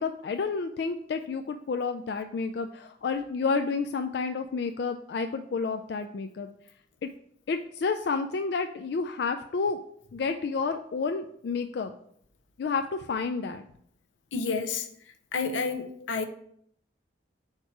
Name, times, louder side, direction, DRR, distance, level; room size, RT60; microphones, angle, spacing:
voice 1, 0.0-6.5 7.0-7.1 7.5-9.8 10.1-11.9 12.6-13.6 16.0-16.1, left 4 dB, 60° left, 6 dB, 0.3 m, -30 dB
voice 2, 14.3-14.9 15.3-16.3, left 4 dB, 85° left, 7 dB, 0.7 m, -29 dB
4.5 x 4.4 x 5.8 m, 0.68 s
head